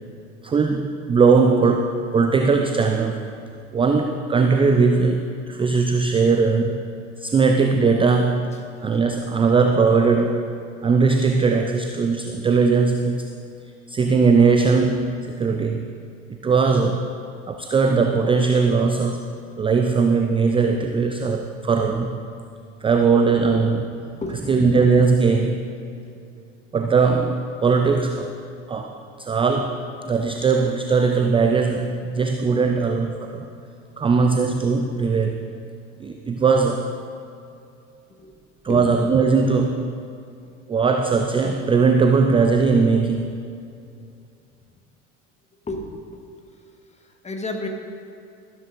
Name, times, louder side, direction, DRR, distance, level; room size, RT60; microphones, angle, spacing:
voice 1, 0.4-3.2 3.7-6.8 7.2-10.4 10.8-13.3 13.9-15.9 16.4-17.1 17.5-19.3 19.6-22.2 22.8-23.9 24.5-25.7 26.7-28.3 28.7-33.5 34.0-35.5 36.0-36.9 38.6-40.0 40.7-43.4, right 4 dB, 15° right, 5 dB, 0.5 m, -19 dB
voice 2, 24.2-24.8 26.0-26.2 38.2-38.4 38.6-38.9 45.6-45.8 46.1-46.2 47.0-47.7, left 2 dB, 15° left, 3 dB, 1.5 m, -32 dB
13.5 x 12.5 x 2.6 m, 2.5 s
figure-of-eight pair, 65°, 38 cm